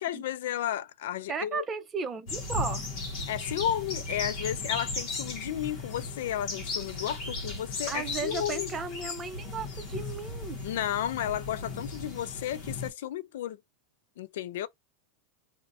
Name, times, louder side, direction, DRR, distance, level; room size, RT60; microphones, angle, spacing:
voice 1, 0.0-1.6 3.3-8.7 10.6-13.6 14.2-14.7, left 11 dB, 75° left, 0.3 m, -33 dB
voice 2, 1.3-2.9 7.9-10.6, right 5 dB, 20° right, 0.6 m, -35 dB
sound 1, 2.3-12.9, left 3 dB, 55° left, 0.8 m, -36 dB
2.5 x 2.1 x 2.6 m
supercardioid pair, 140°, 0 cm